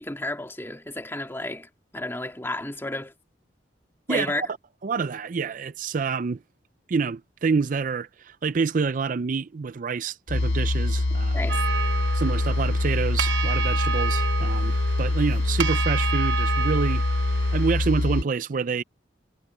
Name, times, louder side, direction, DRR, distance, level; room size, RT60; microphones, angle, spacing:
voice 1, 0.0-3.1 4.1-4.4 11.3-11.6, left 1 dB, 15° left, 2.1 m, -32 dB
voice 2, 4.1-4.5 4.8-6.4 6.9-11.4 12.1-17.0 17.5-18.8, right 5 dB, 50° right, 0.4 m, -27 dB
sound 1, 10.3-18.2, left 2 dB, 90° left, 0.8 m, -24 dB
sound 2, 11.5-17.7, right 6 dB, 85° right, 0.7 m, -30 dB
head